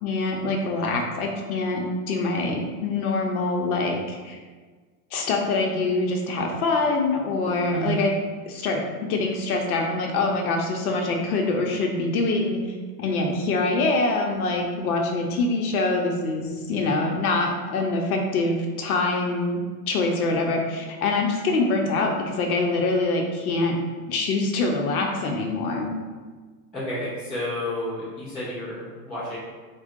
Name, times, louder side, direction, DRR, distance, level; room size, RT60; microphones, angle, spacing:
voice 1, 0.0-4.4 5.1-8.1 8.5-8.8 9.1-12.6 13.0-19.6 19.9-23.8 24.1-25.9, left 3 dB, 65° left, 1 dB, 0.7 m, -24 dB
voice 2, 26.7-29.4, equal, ahead, -23 dB, 0.4 m, -30 dB
3.6 x 2.2 x 3.5 m, 1.4 s
supercardioid pair, 170°, 48 cm